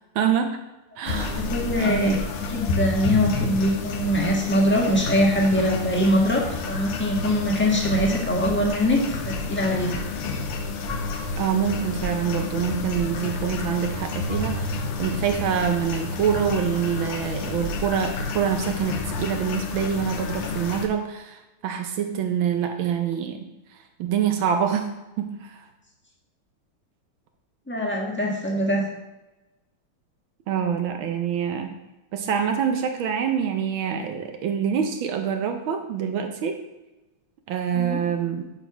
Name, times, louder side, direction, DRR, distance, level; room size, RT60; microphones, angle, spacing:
voice 1, 0.1-0.6 1.0-1.5 1.8-2.2 11.4-23.5 24.0-25.6 30.5-31.7 32.1-36.6 37.5-38.5, right 8 dB, 70° right, 5 dB, 1.5 m, -26 dB
voice 2, 1.0-10.0 27.7-28.8 37.7-38.0, equal, 5° left, -1 dB, 1.1 m, -23 dB
sound 1, 1.1-20.9, left 3 dB, 85° left, 1.8 m, -30 dB
8.0 x 4.5 x 5.9 m, 1.0 s
omnidirectional pair, 2.3 m